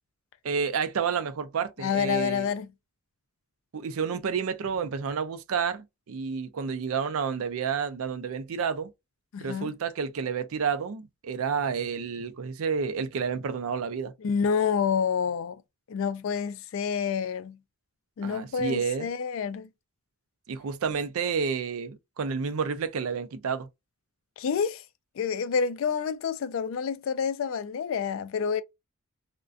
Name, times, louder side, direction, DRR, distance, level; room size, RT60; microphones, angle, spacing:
voice 1, 0.4-2.5 3.7-8.9 9.4-14.1 18.2-19.1 20.5-23.7, right 6 dB, 70° right, 0.4 m, -30 dB
voice 2, 1.8-2.7 9.3-9.7 14.2-15.6 15.9-17.6 18.2-19.7 24.4-24.8 25.2-28.6, left 6 dB, 60° left, 0.3 m, -28 dB
2.4 x 2.1 x 2.4 m
head